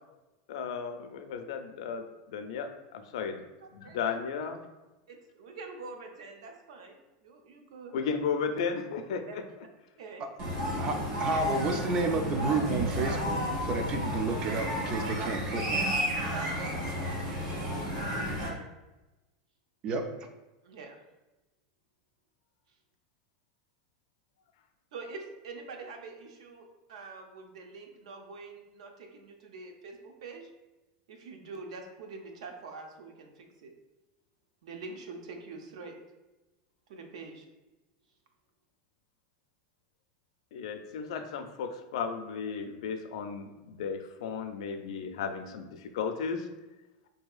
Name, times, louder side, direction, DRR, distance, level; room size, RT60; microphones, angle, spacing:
voice 1, 0.5-3.4 3.7-4.6 7.9-9.4 40.5-46.5, left 6 dB, 75° left, 7 dB, 0.4 m, -34 dB
voice 2, 3.6-4.0 5.1-8.0 9.3-9.4 10.0-10.2 15.2-15.3 16.3-18.6 20.6-21.0 24.9-30.5 31.1-33.7 34.6-36.0 36.9-37.5, right 4 dB, 85° right, 4 dB, 0.6 m, -45 dB
sound 1, 10.4-18.5, equal, 45° right, 0.9 m, -32 dB
voice 3, 10.8-15.9 19.8-20.0, right 3 dB, 25° right, 6 dB, 0.3 m, -31 dB
4.4 x 2.7 x 2.3 m, 1.1 s
supercardioid pair, 170°, 3 cm